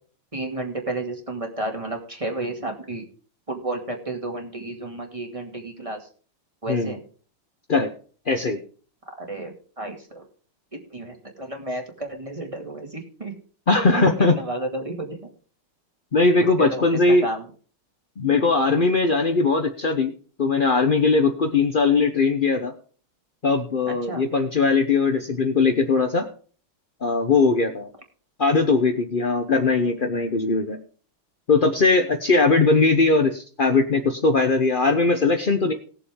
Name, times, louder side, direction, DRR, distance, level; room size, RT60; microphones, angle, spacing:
voice 1, 0.3-3.1 3.5-6.1 6.6-7.0 9.2-10.2 10.7-13.3 13.9-14.1 14.3-15.2 16.4-16.8 17.2-17.5 23.9-24.2, right 2 dB, 15° right, 2 dB, 2.1 m, -31 dB
voice 2, 8.3-8.6 13.7-14.4 16.1-17.2 18.2-20.1 20.4-22.7 23.4-26.2 27.0-27.9 28.4-30.8 31.5-35.7, left 3 dB, 80° left, 5 dB, 0.4 m, -20 dB
19.5 x 7.0 x 3.7 m, 0.41 s
omnidirectional pair, 2.4 m